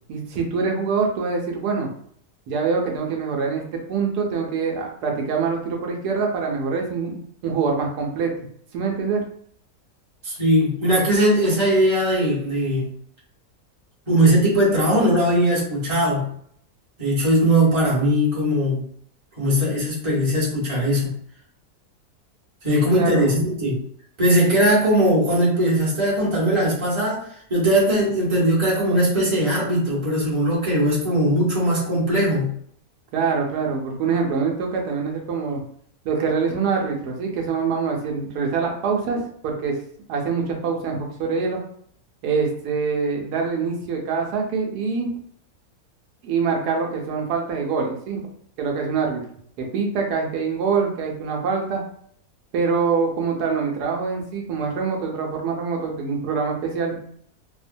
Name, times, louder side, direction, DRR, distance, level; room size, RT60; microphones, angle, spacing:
voice 1, 0.1-1.9 2.5-8.5 8.7-9.2 22.7-23.3 33.1-35.6 36.0-39.8 40.1-41.6 42.2-45.1 46.2-48.2 48.6-49.2 49.6-51.8 52.5-57.0, right 5 dB, 85° right, 1 dB, 1.2 m, -24 dB
voice 2, 10.2-12.9 14.1-16.3 17.0-18.9 19.4-21.1 22.6-23.8 24.2-27.2 27.5-32.6, right 1 dB, 20° right, -7 dB, 0.9 m, -19 dB
2.9 x 2.1 x 2.5 m, 0.64 s
omnidirectional pair, 1.7 m